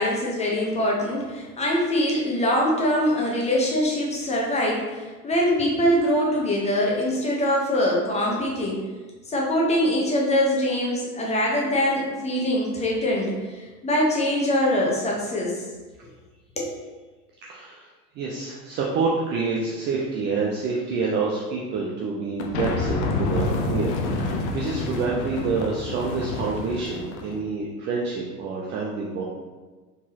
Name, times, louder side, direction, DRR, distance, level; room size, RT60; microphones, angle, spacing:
voice 1, 0.0-8.9 9.3-15.6 16.6-16.7, equal, 15° left, -2 dB, 1.0 m, -23 dB
voice 2, 17.5-17.9 18.1-29.2, right 4 dB, 25° right, -4 dB, 0.5 m, -27 dB
sound 1, 22.4-27.4, left 3 dB, 50° left, 0.7 m, -28 dB
4.3 x 4.0 x 2.9 m, 1.3 s
figure-of-eight pair, 90°, 46 cm